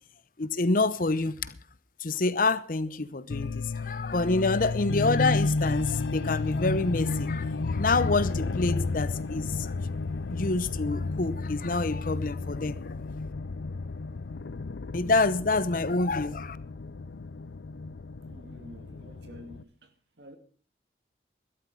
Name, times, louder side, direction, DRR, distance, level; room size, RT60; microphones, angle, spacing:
voice 1, 0.4-1.5 2.0-9.9 10.3-12.8 14.9-16.6, left 3 dB, 50° left, 0.8 m, -27 dB
sound 1, 3.3-19.6, left 3 dB, 85° left, 0.6 m, -32 dB
voice 2, 18.3-20.4, equal, 75° right, 2.4 m, -50 dB
12.5 x 12.5 x 5.6 m
head